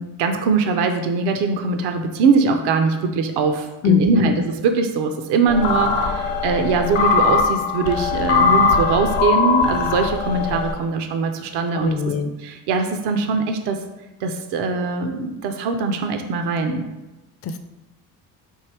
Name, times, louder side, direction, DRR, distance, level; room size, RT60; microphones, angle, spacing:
voice 1, 0.0-12.1 12.4-13.8 14.2-16.8, right 4 dB, 65° right, 6 dB, 0.6 m, -22 dB
voice 2, 3.8-4.3 11.7-12.3 17.4-17.6, left 7 dB, 35° left, 8 dB, 0.4 m, -21 dB
sound 1, 5.5-10.7, left 4 dB, 70° left, 0.9 m, -20 dB
4.6 x 2.7 x 3.3 m, 1.0 s
supercardioid pair, 70°, 45 cm